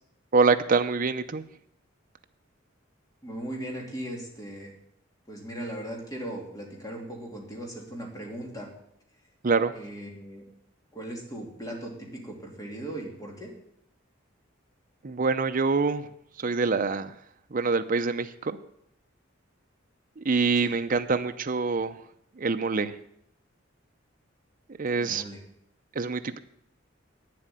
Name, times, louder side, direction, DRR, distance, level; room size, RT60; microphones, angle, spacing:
voice 1, 0.3-1.4 9.4-9.7 15.0-16.0 16.4-17.1 17.5-18.6 20.2-22.0 22.4-23.0 24.8-25.2 26.0-26.4, right 4 dB, 40° right, 8 dB, 0.6 m, -25 dB
voice 2, 3.2-4.7 5.3-8.7 9.7-10.5 10.9-13.5 20.6-20.7 25.0-25.4, right 1 dB, 20° left, 0 dB, 2.7 m, -38 dB
9.2 x 7.7 x 9.0 m, 0.74 s
head